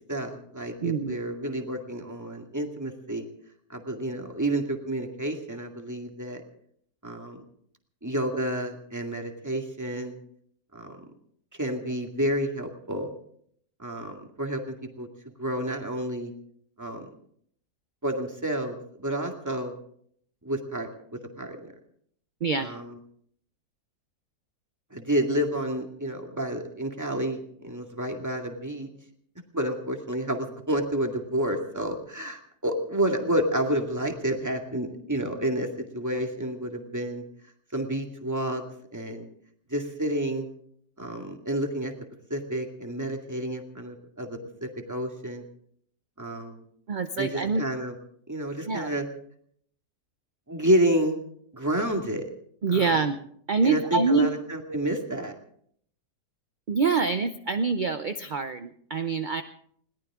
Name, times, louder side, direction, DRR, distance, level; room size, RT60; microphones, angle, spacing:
voice 1, 0.1-3.2 3.7-6.4 7.0-7.4 8.0-10.1 10.7-11.0 11.6-13.1 13.8-15.1 15.4-16.3 16.8-17.1 18.0-19.7 20.4-20.9 21.4-21.7 22.6-22.9 24.9-28.9 29.5-37.2 37.7-38.6 38.9-39.3 39.7-40.5 41.0-41.9 42.3-45.4 46.2-46.6 47.2-47.9 48.3-49.0 50.5-51.2 51.5-52.3 52.7-52.9 53.6-55.3, right 1 dB, 10° right, 3 dB, 2.0 m, -29 dB
voice 2, 0.8-1.2 22.4-22.7 46.9-47.6 48.7-48.9 52.6-53.2 53.5-54.3 56.7-59.4, right 4 dB, 55° right, 9 dB, 0.5 m, -25 dB
21.0 x 18.0 x 3.7 m, 0.65 s
omnidirectional pair, 1.7 m